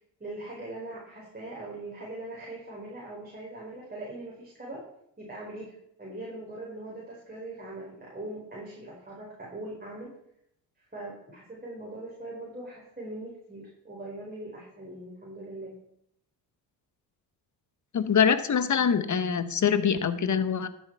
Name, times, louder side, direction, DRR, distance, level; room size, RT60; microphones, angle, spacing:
voice 1, 0.2-4.9 5.2-10.2 10.9-15.7, right 2 dB, 20° right, -5 dB, 4.6 m, -41 dB
voice 2, 17.9-20.7, left 7 dB, 35° left, 13 dB, 1.1 m, -24 dB
12.0 x 8.0 x 4.6 m, 0.74 s
hypercardioid pair, 60°, 48 cm